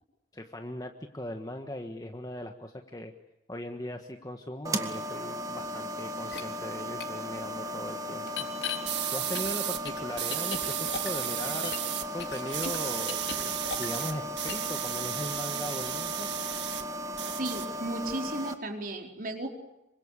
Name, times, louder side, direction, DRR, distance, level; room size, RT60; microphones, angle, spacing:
voice 1, 0.3-3.1 3.5-8.5 9.1-11.7 12.1-13.2 13.7-16.3, left 1 dB, 20° left, 4 dB, 1.5 m, -39 dB
sound 1, 4.6-18.5, equal, 20° right, 1.9 m, -36 dB
sound 2, 6.3-6.4 7.0-7.1 8.3-8.8 9.3-11.9 12.2-14.2 14.5-14.7, left 6 dB, 80° left, 3.7 m, -37 dB
sound 3, 8.9-9.8 10.2-12.1 12.3-16.8 17.1-18.1, right 12 dB, 85° right, 1.9 m, -34 dB
voice 2, 17.3-19.5, right 1 dB, 50° right, 3 dB, 4.6 m, -35 dB
27.0 x 24.5 x 8.4 m, 0.94 s
head